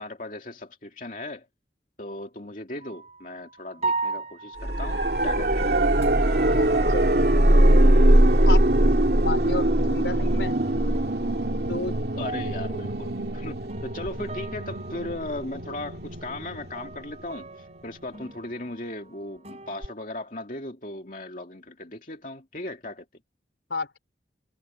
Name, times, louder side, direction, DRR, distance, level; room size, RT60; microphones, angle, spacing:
voice 1, 0.0-1.5 2.0-5.8 12.2-23.1, left 2 dB, 45° left, 2.6 m, -37 dB
sound 1, 2.8-3.2 3.8-8.7 9.0-9.8 10.2-19.9, right 3 dB, 35° right, 5.8 m, -38 dB
sound 2, 4.6-17.5 19.8-19.9, right 1 dB, 60° right, 2.6 m, -22 dB
voice 2, 6.6-7.2 8.4-8.6 9.1-10.6 11.7-12.0 23.7-24.0, left 3 dB, 85° left, 4.9 m, -32 dB
head